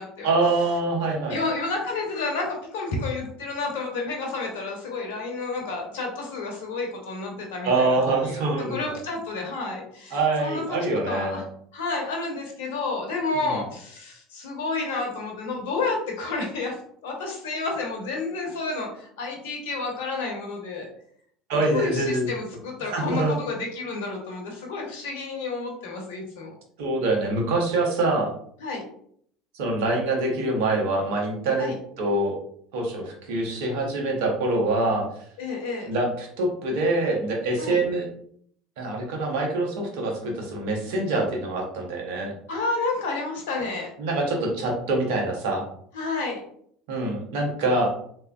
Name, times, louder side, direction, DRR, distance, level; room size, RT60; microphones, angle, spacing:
voice 1, 0.2-1.4 7.6-8.9 10.1-11.4 13.4-13.6 21.5-22.3 22.8-23.4 26.8-28.3 29.5-31.7 32.0-32.4 32.7-35.1 35.9-38.1 38.8-42.3 44.0-45.6 46.9-47.9, right 2 dB, 70° right, 1 dB, 0.9 m, -25 dB
voice 2, 1.3-8.0 8.2-10.6 11.1-11.4 11.7-16.8 17.0-20.9 21.7-26.5 28.6-28.8 31.6-31.7 35.4-35.9 37.6-37.8 42.5-43.9 45.9-46.4, left 3 dB, 70° left, 1 dB, 0.9 m, -30 dB
3.3 x 3.1 x 2.3 m, 0.65 s
hypercardioid pair, 70°, 0 cm